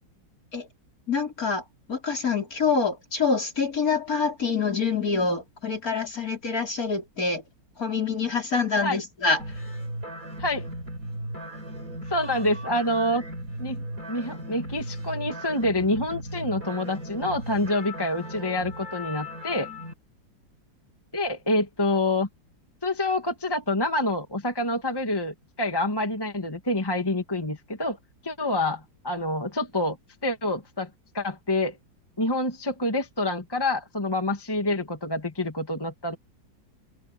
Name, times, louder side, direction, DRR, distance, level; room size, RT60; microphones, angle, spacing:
voice 1, 1.1-1.6 1.9-7.4 7.8-9.4, left 4 dB, 45° left, 5.1 m, -26 dB
sound 1, 9.4-19.9, equal, 45° right, 6.0 m, -37 dB
voice 2, 12.1-13.2 13.6-19.7 21.1-22.3 22.8-28.0 28.2-30.0 30.2-30.9 31.1-31.8 32.2-36.2, left 1 dB, 10° left, 2.0 m, -27 dB
omnidirectional pair, 2.1 m